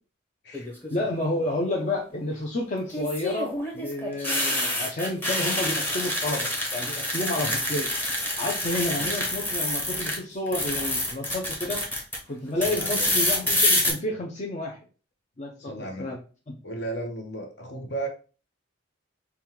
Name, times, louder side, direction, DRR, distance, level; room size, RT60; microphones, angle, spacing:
sound 1, 0.5-1.0 2.9-10.2 10.5-12.2 12.6-13.9, left 1 dB, 10° left, 0.8 m, -27 dB
voice 1, 0.9-7.9 8.4-11.8 12.3-14.8 15.4-15.5 16.0-16.2 16.5-16.6, left 2 dB, 35° left, 0.6 m, -30 dB
voice 2, 12.6-13.2 15.6-16.1 16.6-18.1, right 2 dB, 60° left, 1.0 m, -35 dB
5.3 x 2.3 x 2.9 m
head